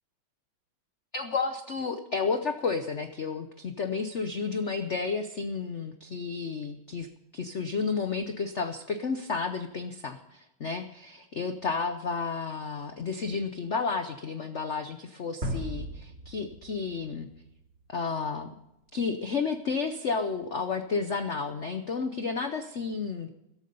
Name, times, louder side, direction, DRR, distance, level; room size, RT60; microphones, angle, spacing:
voice 1, 1.1-7.1 7.3-17.3 17.9-18.5 18.9-23.3, left 5 dB, 80° left, 8 dB, 0.6 m, -31 dB
sound 1, 15.4-18.3, right 1 dB, 30° right, 2.5 m, -37 dB
14.0 x 12.0 x 5.4 m, 0.87 s
omnidirectional pair, 2.4 m